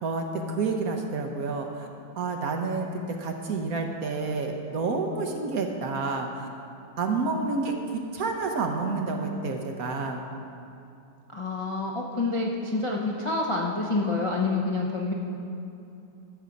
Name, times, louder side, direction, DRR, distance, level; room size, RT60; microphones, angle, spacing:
voice 1, 0.0-1.9 2.2-6.5 7.0-10.2, right 3 dB, 60° right, 3 dB, 1.1 m, -29 dB
voice 2, 11.3-15.1, left 3 dB, 35° left, -2 dB, 0.5 m, -27 dB
12.5 x 7.0 x 5.2 m, 2.7 s
omnidirectional pair, 1.9 m